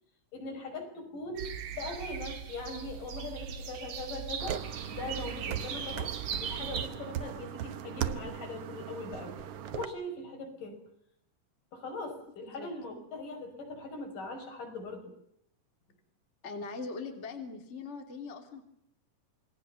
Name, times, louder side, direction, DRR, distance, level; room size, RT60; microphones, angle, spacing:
voice 1, 0.3-4.6 4.9-9.4 9.7-10.8 11.7-15.1, left 2 dB, 60° left, 3 dB, 7.0 m, -41 dB
sound 1, 1.3-6.9, right 8 dB, 50° right, 2.6 m, -39 dB
sound 2, 4.4-9.8, right 9 dB, 75° right, 1.3 m, -38 dB
voice 2, 16.4-18.6, left 4 dB, 20° left, 4 dB, 2.7 m, -41 dB
28.0 x 21.0 x 7.0 m, 0.71 s
omnidirectional pair, 4.2 m